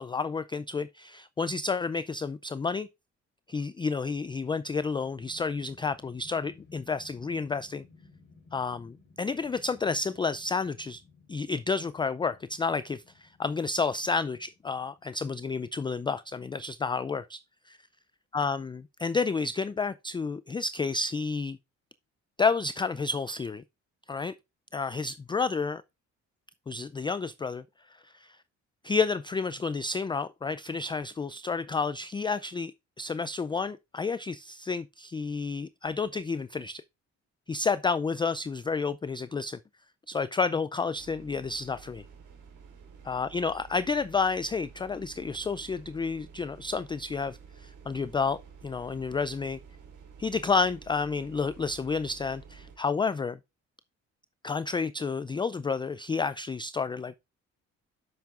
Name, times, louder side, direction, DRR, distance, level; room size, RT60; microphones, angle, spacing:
voice 1, 0.0-2.9 3.5-7.8 8.5-11.0 11.3-17.4 17.7-17.8 18.3-21.6 22.4-23.6 24.1-24.3 24.7-25.8 26.7-27.6 28.1-28.3 28.8-32.7 33.0-36.8 37.5-39.6 40.1-42.0 43.0-48.4 48.6-49.6 50.2-53.4 54.4-57.2, left 4 dB, 15° left, 0.3 m, -30 dB
sound 1, 4.1-16.3, left 4 dB, 35° left, 3.7 m, -58 dB
sound 2, 40.9-52.8, right 6 dB, 80° right, 4.0 m, -51 dB
9.4 x 7.1 x 2.4 m
cardioid pair, 90°, 30 cm